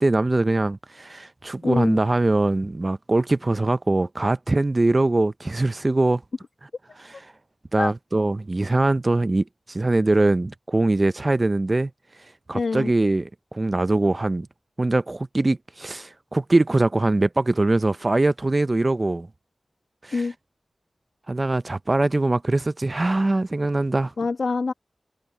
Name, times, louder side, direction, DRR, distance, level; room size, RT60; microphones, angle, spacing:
voice 1, 0.0-6.2 7.0-7.3 7.7-11.9 12.2-14.5 14.8-19.3 20.0-20.3 21.3-24.1, right 2 dB, 35° right, 0.5 m, -22 dB
voice 2, 1.6-2.0 7.8-7.9 12.5-12.9 20.1-20.3 24.2-24.7, left 4 dB, 75° left, 1.2 m, -25 dB
wide cardioid pair, 80°, 0 cm